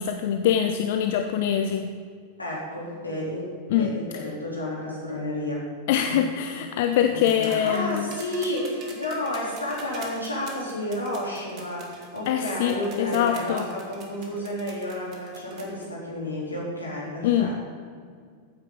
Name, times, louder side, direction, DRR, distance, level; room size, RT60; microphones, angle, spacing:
voice 1, 0.0-1.9 3.7-4.0 5.9-8.1 12.3-13.7 17.2-17.6, left 9 dB, 50° left, 6 dB, 0.6 m, -24 dB
voice 2, 2.4-5.7 6.0-6.2 7.1-17.7, left 1 dB, 80° left, -4 dB, 3.4 m, -31 dB
sound 1, 7.2-15.9 17.1-17.2, right 4 dB, 35° right, 1.9 m, -44 dB
15.0 x 9.0 x 3.9 m, 2.1 s
figure-of-eight pair, 90°, 0 cm